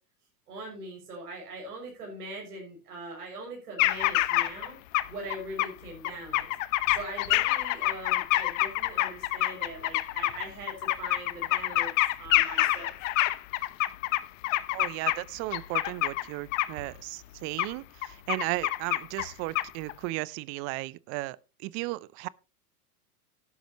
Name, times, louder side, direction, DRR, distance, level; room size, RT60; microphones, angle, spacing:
voice 1, 0.5-4.8 5.1-6.5 6.9-11.9 12.2-12.9, right 2 dB, 75° right, 6.3 m, -41 dB
sound 1, 3.8-4.7 4.9-5.7 6.0-15.2 15.5-16.2 16.5-16.7 17.6-17.7 18.0-19.3 19.6-19.9, left 17 dB, 55° left, 1.1 m, -26 dB
voice 2, 14.7-22.3, right 21 dB, 30° right, 0.5 m, -35 dB
12.0 x 11.5 x 3.0 m
hypercardioid pair, 100°, 46 cm